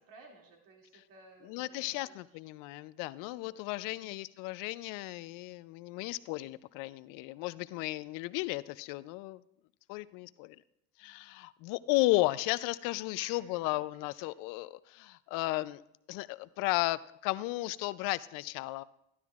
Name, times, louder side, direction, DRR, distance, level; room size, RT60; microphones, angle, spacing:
voice 1, 0.0-2.1 3.4-4.1 13.2-13.6, right 3 dB, 75° right, 0 dB, 2.5 m, -57 dB
voice 2, 1.4-9.4 9.9-10.6 11.0-15.8 16.1-18.8, left 19 dB, 75° left, 17 dB, 0.5 m, -34 dB
12.0 x 12.0 x 2.4 m, 0.80 s
supercardioid pair, 90°, 33 cm